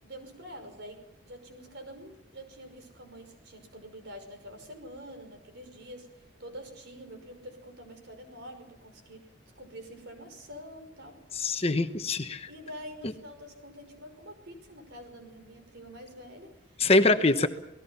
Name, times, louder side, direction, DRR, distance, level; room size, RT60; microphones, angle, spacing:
voice 1, 0.0-9.2 9.6-11.2 12.5-17.5, equal, 60° right, 6 dB, 5.6 m, -46 dB
voice 2, 11.4-12.5 16.8-17.5, left 2 dB, 30° left, 8 dB, 1.1 m, -23 dB
28.5 x 19.0 x 5.8 m, 0.84 s
head